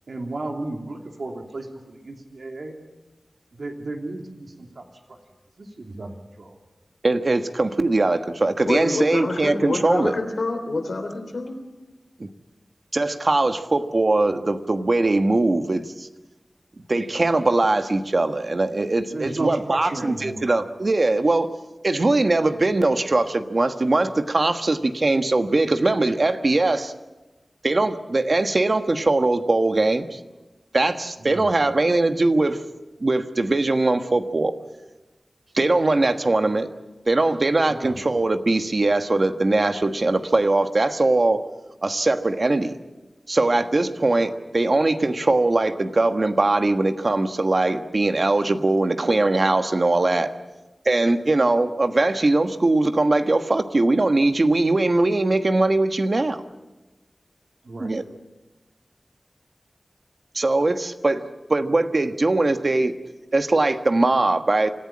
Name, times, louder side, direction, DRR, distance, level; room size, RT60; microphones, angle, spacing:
voice 1, 0.1-2.8 3.5-4.8 5.6-6.5 19.1-20.4 31.2-31.5 37.7-38.0 57.6-57.9, right 2 dB, 80° right, 2 dB, 3.0 m, -34 dB
voice 2, 7.0-10.1 12.2-12.3 12.9-16.1 16.9-21.5 21.8-26.9 27.6-30.2 30.7-32.6 33.0-34.5 35.5-36.7 37.1-41.4 41.8-42.7 43.3-50.3 50.8-56.4 57.8-58.0 60.3-61.2 61.5-62.9 63.3-64.7, right 2 dB, 50° right, 8 dB, 1.3 m, -21 dB
voice 3, 8.7-11.6 19.1-19.2, left 2 dB, 85° left, 5 dB, 3.4 m, -27 dB
25.5 x 15.0 x 8.7 m, 1.1 s
wide cardioid pair, 80°, 0 cm